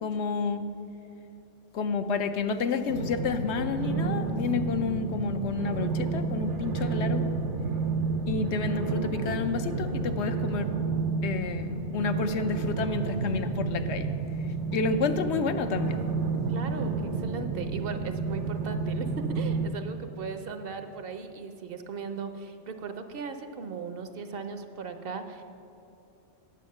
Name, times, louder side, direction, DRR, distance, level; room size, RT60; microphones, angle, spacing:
voice 1, 0.0-0.7 1.7-7.3 8.3-10.7 11.2-14.1 14.4-16.0, left 5 dB, 75° left, 8 dB, 0.9 m, -30 dB
sound 1, 2.9-19.7, right 4 dB, 85° right, 1.1 m, -30 dB
voice 2, 16.5-25.4, right 5 dB, 60° right, 8 dB, 0.8 m, -38 dB
9.3 x 7.8 x 6.5 m, 2.7 s
omnidirectional pair, 1.2 m